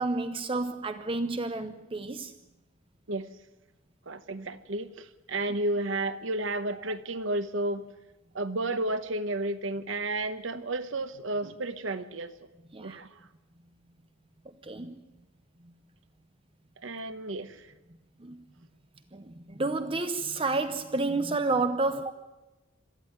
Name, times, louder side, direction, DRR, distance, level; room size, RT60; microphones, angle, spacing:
voice 1, 0.0-2.3 12.7-13.0 14.4-15.0 15.6-15.7 18.2-18.5 19.1-22.1, right 3 dB, 25° right, 0.8 m, -30 dB
voice 2, 4.1-7.9 8.3-12.3 12.8-13.2 16.8-17.7, right 2 dB, 75° right, 1.0 m, -32 dB
22.5 x 14.0 x 9.3 m
head